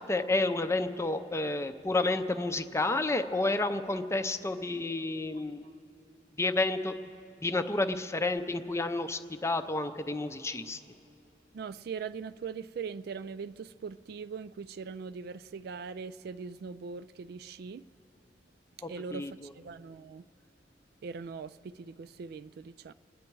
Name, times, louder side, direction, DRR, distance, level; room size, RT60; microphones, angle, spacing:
voice 1, 0.0-5.6 6.4-7.0 7.4-10.8 18.8-19.3, left 2 dB, 15° left, 0.5 m, -30 dB
voice 2, 11.5-17.9 18.9-20.3 21.0-22.9, right 5 dB, 60° right, 0.3 m, -41 dB
28.0 x 9.8 x 4.6 m
head